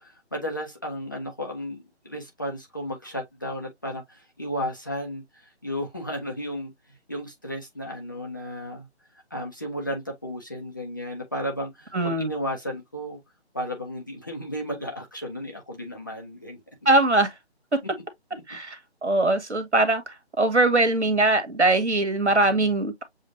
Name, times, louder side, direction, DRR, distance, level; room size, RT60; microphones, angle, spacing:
voice 1, 0.0-6.7 7.1-8.9 9.3-13.2 13.5-16.6 18.3-18.4 22.3-22.8, equal, 20° left, 0.6 m, -34 dB
voice 2, 11.9-12.3 16.8-17.3 18.5-23.0, right 2 dB, 85° right, 1.6 m, -22 dB
7.3 x 2.4 x 2.6 m
figure-of-eight pair, 155°, 34 cm